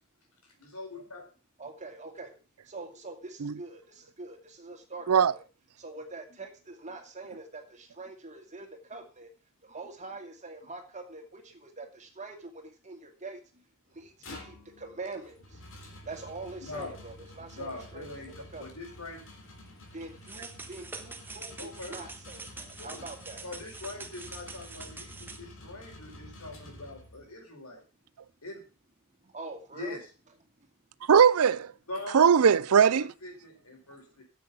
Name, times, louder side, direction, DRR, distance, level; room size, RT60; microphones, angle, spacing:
voice 1, 0.4-1.2 16.6-16.9 17.5-19.2 21.6-21.9 22.8-23.0 23.4-25.1 25.4-27.8 28.4-28.6 29.7-30.1 31.9-32.3 32.7-34.2, left 2 dB, 80° left, 5.0 m, -42 dB
voice 2, 1.6-2.3 2.7-5.4 5.8-9.3 9.6-13.6 13.9-15.6 16.0-18.7 19.9-23.4 29.2-30.0, right 3 dB, 35° right, 2.3 m, -44 dB
sound 1, 13.9-27.4, left 1 dB, 60° left, 3.5 m, -50 dB
sound 2, 20.3-25.4, right 3 dB, 10° right, 1.3 m, -45 dB
voice 3, 31.1-31.7 32.1-33.1, right 7 dB, 80° right, 0.5 m, -20 dB
9.8 x 7.7 x 7.0 m
head